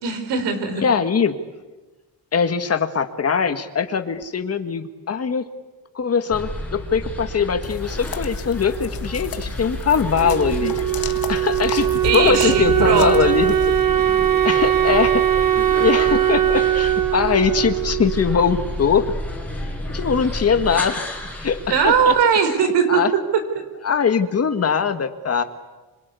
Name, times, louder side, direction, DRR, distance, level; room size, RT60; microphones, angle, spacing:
voice 1, 0.0-0.9 12.0-13.2 21.7-23.7, right 7 dB, 85° right, 9 dB, 4.7 m, -20 dB
voice 2, 0.8-1.4 2.3-5.5 6.0-13.6 13.8-14.0 14.5-19.1 19.9-21.0 21.4-22.1 22.9-23.1 23.8-25.4, left 6 dB, 35° left, 8 dB, 1.9 m, -21 dB
sound 1, 6.3-22.2, left 1 dB, 5° left, 5.5 m, -31 dB
sound 2, 7.6-13.8, left 9 dB, 60° left, 1.7 m, -33 dB
Wind instrument woodwind instrument, 10.2-18.9, right 12 dB, 55° right, 1.7 m, -20 dB
27.5 x 25.5 x 8.5 m, 1.2 s
cardioid pair, 140°, 41 cm